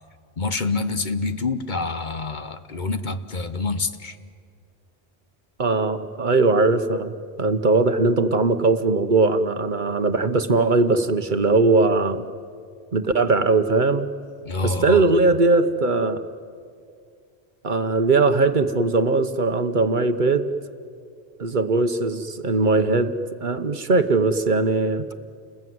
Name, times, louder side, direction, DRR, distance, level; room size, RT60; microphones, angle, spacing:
voice 1, 0.4-4.2 14.4-15.0, left 3 dB, 50° left, 10 dB, 1.1 m, -27 dB
voice 2, 5.6-7.1 7.4-12.2 12.9-14.1 14.6-16.2 17.6-20.5 21.4-23.1 23.4-25.1, right 3 dB, 50° right, 9 dB, 1.1 m, -20 dB
29.5 x 21.0 x 9.4 m, 2.2 s
omnidirectional pair, 1.1 m